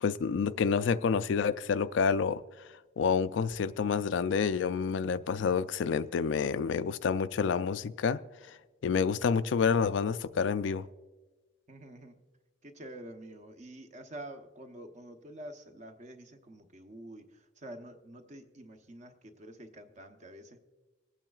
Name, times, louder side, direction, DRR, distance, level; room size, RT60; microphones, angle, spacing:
voice 1, 0.0-2.4 3.0-8.2 8.8-10.9, left 6 dB, 80° left, 0.4 m, -28 dB
voice 2, 11.7-12.2 12.6-20.6, right 1 dB, 40° right, 0.9 m, -47 dB
25.5 x 8.8 x 2.4 m
head